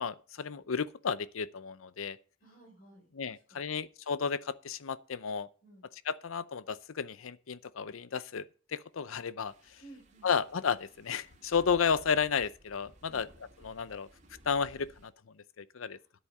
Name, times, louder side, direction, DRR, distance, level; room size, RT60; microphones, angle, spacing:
voice 1, 0.0-2.2 3.1-5.5 6.1-9.8 10.2-13.3 13.6-14.1 14.4-16.0, left 6 dB, 85° left, 0.6 m, -33 dB
voice 2, 2.4-3.8 5.6-5.9 9.8-10.3 13.0-13.2 15.8-16.1, right 2 dB, 45° left, 5.0 m, -56 dB
sound 1, 9.5-15.1, equal, 35° right, 2.6 m, -58 dB
10.0 x 8.4 x 6.5 m
head